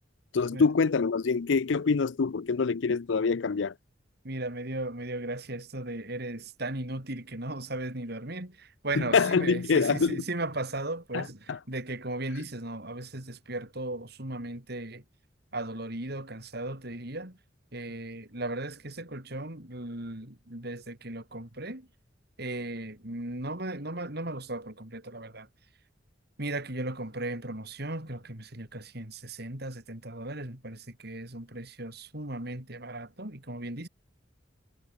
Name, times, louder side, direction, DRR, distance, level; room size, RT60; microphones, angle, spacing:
voice 1, 0.3-3.7 9.0-10.2 11.1-11.6, left 5 dB, 70° left, 0.5 m, -25 dB
voice 2, 4.2-15.0 15.5-17.4 17.7-21.9 22.4-25.5 26.4-33.9, right 2 dB, 55° right, 4.5 m, -36 dB
head